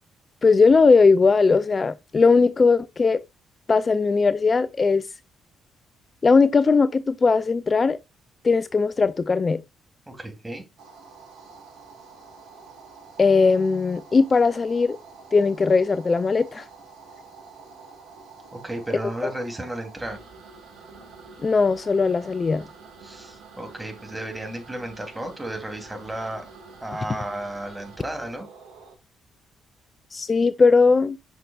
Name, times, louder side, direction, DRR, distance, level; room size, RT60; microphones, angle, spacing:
voice 1, 0.4-3.2 3.7-5.1 6.2-8.0 8.4-9.6 13.2-15.0 15.3-16.6 19.2-19.3 21.4-22.7 30.1-31.2, left 4 dB, 35° left, 0.4 m, -19 dB
voice 2, 10.1-10.6 18.6-20.2 23.0-26.5 26.8-28.5, right 1 dB, 15° right, 3.0 m, -33 dB
sound 1, 10.8-29.0, right 4 dB, 75° right, 1.9 m, -47 dB
7.9 x 5.9 x 2.4 m
hypercardioid pair, 45°, 0 cm